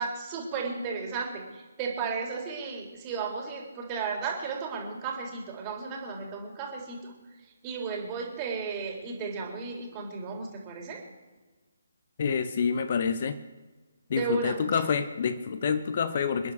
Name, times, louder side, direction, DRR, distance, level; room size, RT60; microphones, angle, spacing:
voice 1, 0.0-1.4 1.8-7.1 7.6-11.0 14.1-14.8, right 5 dB, 20° right, 1 dB, 3.5 m, -34 dB
voice 2, 12.2-13.4 14.1-16.5, left 6 dB, 40° left, 12 dB, 0.9 m, -27 dB
28.0 x 10.5 x 4.8 m, 1.3 s
figure-of-eight pair, 140°, 0 cm